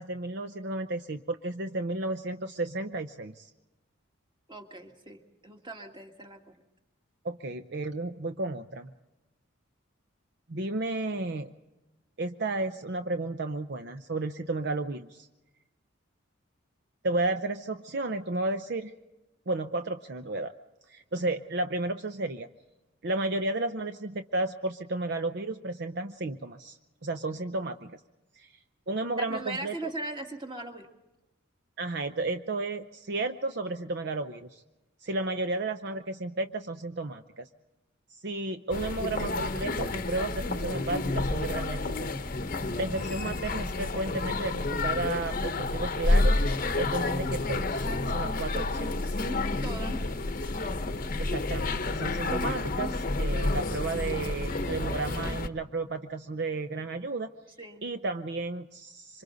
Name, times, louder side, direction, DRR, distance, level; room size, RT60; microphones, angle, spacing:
voice 1, 0.0-3.5 7.2-8.9 10.5-11.5 12.2-15.3 17.0-18.9 19.5-20.5 20.9-22.5 23.0-28.0 28.3-28.5 28.9-29.9 31.8-34.6 35.0-37.5 38.1-42.1 42.8-46.4 46.8-49.2 51.2-57.3 57.8-59.2, right 2 dB, 55° right, 8 dB, 0.7 m, -33 dB
voice 2, 4.5-6.4 29.2-30.9 49.6-50.0 57.6-57.8, right 2 dB, 25° right, 3 dB, 2.0 m, -39 dB
sound 1, 38.7-55.5, left 2 dB, 45° left, 0.9 m, -29 dB
27.0 x 25.0 x 4.0 m, 1.0 s
head